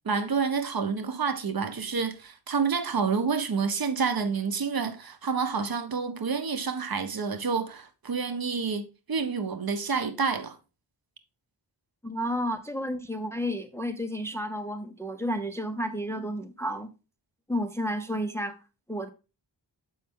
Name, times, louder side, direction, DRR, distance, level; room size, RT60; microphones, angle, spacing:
voice 1, 0.0-10.6, right 5 dB, 50° right, 0.9 m, -28 dB
voice 2, 12.0-16.9 17.5-18.6 18.9-19.1, equal, 5° left, 0.6 m, -31 dB
7.4 x 5.5 x 3.5 m
wide cardioid pair, 110°, 46 cm